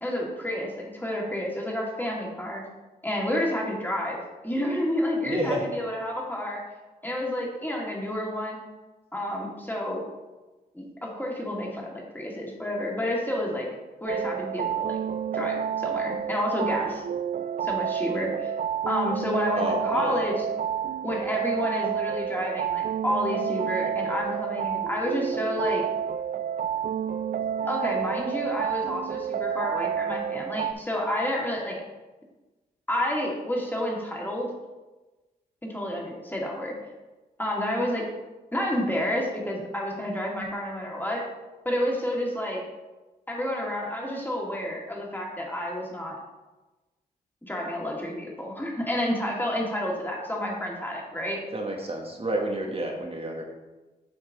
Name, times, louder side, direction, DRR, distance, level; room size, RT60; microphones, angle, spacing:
voice 1, 0.0-2.6 3.0-6.6 7.0-8.6 9.1-10.0 10.7-13.7 14.0-15.0 15.3-17.0 17.6-18.5 18.9-20.4 21.0-25.8 27.7-31.8 32.9-34.5 35.6-36.7 37.4-38.0 38.5-41.2 41.6-42.6 43.3-46.2 47.4-51.4, left 1 dB, 10° left, -2 dB, 2.3 m, -30 dB
voice 2, 5.2-5.7 19.6-20.2 51.5-53.4, right 1 dB, 35° right, 0 dB, 1.3 m, -29 dB
sound 1, 14.1-30.7, right 9 dB, 50° right, 0.4 m, -29 dB
7.5 x 4.6 x 3.9 m, 1.2 s
supercardioid pair, 45°, 18 cm